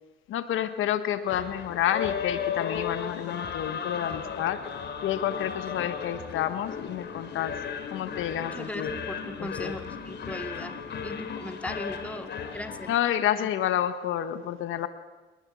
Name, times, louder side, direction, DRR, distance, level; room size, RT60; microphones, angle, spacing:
voice 1, 0.3-4.6 5.0-7.6 7.9-9.0 9.4-9.8 12.9-14.9, left 11 dB, 85° left, 11 dB, 1.4 m, -29 dB
sound 1, 1.3-13.0, left 7 dB, 60° left, 3.0 m, -35 dB
voice 2, 8.4-10.8 11.0-12.9 13.4-13.5, left 1 dB, 5° left, 6 dB, 2.4 m, -38 dB
24.5 x 21.0 x 8.7 m, 1.2 s
cardioid pair, 90°, 20 cm